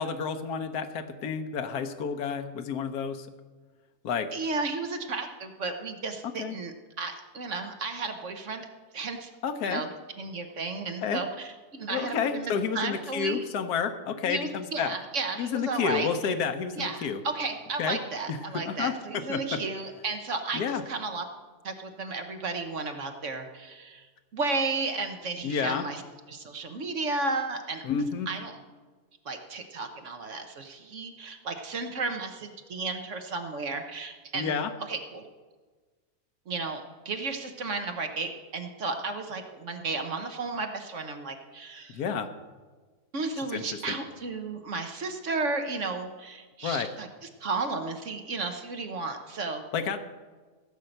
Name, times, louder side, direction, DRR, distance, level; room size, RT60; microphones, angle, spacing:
voice 1, 0.0-3.3 4.0-4.3 6.4-6.6 9.4-9.8 11.0-11.2 11.9-14.9 15.4-17.2 17.8-18.0 18.3-18.9 19.3-19.6 20.5-20.8 25.4-25.8 27.8-28.3 34.3-34.7 41.9-42.3 43.5-44.0 46.6-46.9 49.7-50.0, left 6 dB, 75° left, 7 dB, 1.4 m, -30 dB
voice 2, 4.3-8.7 8.9-9.3 9.7-9.9 10.2-13.4 14.2-16.3 16.8-21.2 21.6-24.1 24.3-26.0 26.3-27.8 28.3-28.6 29.2-35.2 36.5-42.0 43.1-47.1 47.4-49.6, right 3 dB, 55° right, 6 dB, 1.2 m, -33 dB
16.0 x 5.6 x 7.8 m, 1.4 s
omnidirectional pair, 1.7 m